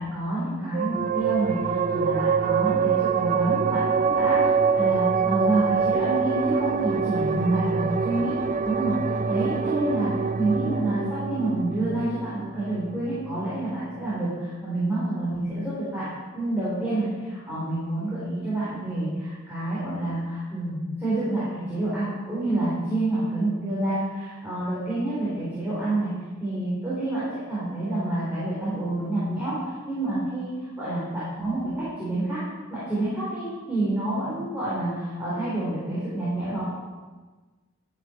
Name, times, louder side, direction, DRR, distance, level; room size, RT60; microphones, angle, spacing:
voice 1, 0.0-8.4 8.6-10.1 10.4-16.1 16.3-26.1 26.4-32.4 32.7-36.6, right 2 dB, 10° right, -11 dB, 4.3 m, -28 dB
sound 1, 0.7-13.6, right 5 dB, 35° right, 0.4 m, -25 dB
12.5 x 10.5 x 4.6 m, 1.3 s
head